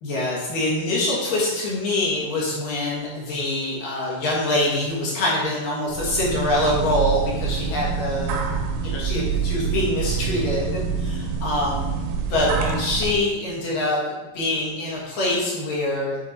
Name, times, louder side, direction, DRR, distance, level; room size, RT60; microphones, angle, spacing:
voice 1, 0.0-8.4 8.8-11.1 11.4-11.9 12.3-14.0 14.3-16.3, left 1 dB, 60° left, -5 dB, 2.4 m, -24 dB
sound 1, 5.9-13.2, right 6 dB, 85° right, 3.2 m, -26 dB
10.5 x 4.3 x 4.0 m, 1.1 s
omnidirectional pair, 5.8 m